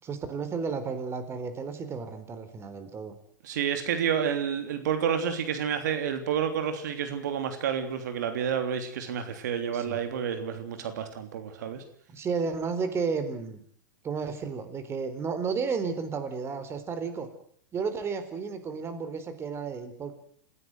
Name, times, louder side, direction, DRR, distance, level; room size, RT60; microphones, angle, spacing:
voice 1, 0.0-3.2 9.7-10.0 12.1-13.6 14.0-17.3 17.7-20.2, right 5 dB, 25° right, 10 dB, 4.0 m, -32 dB
voice 2, 3.4-11.8, right 8 dB, 65° right, 8 dB, 3.2 m, -29 dB
28.5 x 16.5 x 7.9 m, 0.63 s
hypercardioid pair, 105°, 10 cm